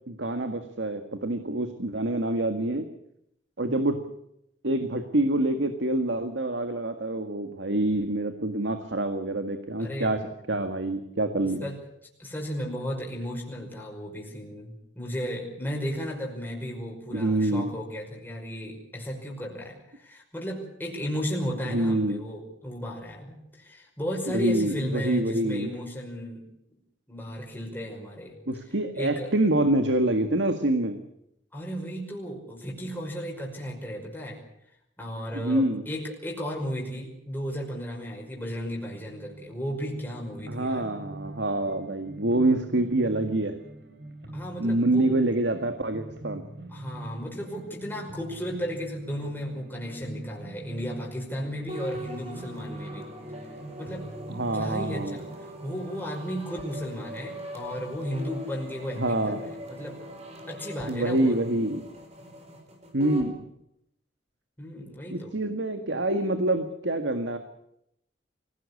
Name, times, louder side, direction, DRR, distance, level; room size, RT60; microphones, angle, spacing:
voice 1, 0.1-2.9 3.6-4.0 4.6-10.2 10.5-11.6 17.1-17.7 21.7-22.2 24.3-25.7 28.5-31.0 35.3-35.8 40.5-43.6 44.6-46.4 54.3-55.2 59.0-59.4 60.9-61.8 62.9-63.3 65.1-67.4, right 1 dB, 85° right, 7 dB, 1.8 m, -26 dB
voice 2, 9.8-10.2 11.6-11.8 12.2-26.4 27.1-28.4 28.9-29.3 31.5-34.4 35.0-40.9 44.3-45.1 46.7-53.1 53.8-54.0 54.5-60.0 60.5-61.4 64.6-65.3, equal, 10° left, -2 dB, 5.6 m, -35 dB
sound 1, 38.8-57.9, right 1 dB, 65° right, 3.8 m, -43 dB
sound 2, 51.7-63.3, equal, 40° right, 4.7 m, -41 dB
25.0 x 17.5 x 8.4 m, 0.77 s
head